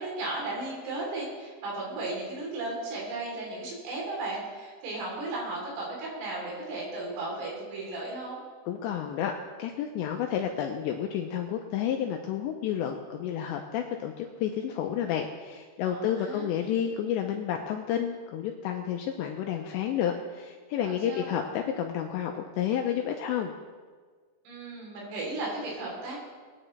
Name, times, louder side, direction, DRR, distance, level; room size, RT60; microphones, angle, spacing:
voice 1, 0.0-8.4 15.9-16.5 20.8-21.3 24.5-26.2, right 2 dB, 80° right, -3 dB, 6.0 m, -35 dB
voice 2, 8.7-9.3 9.6-23.5, left 9 dB, 85° left, 3 dB, 2.6 m, -30 dB
21.0 x 9.9 x 3.3 m, 1.5 s
omnidirectional pair, 5.8 m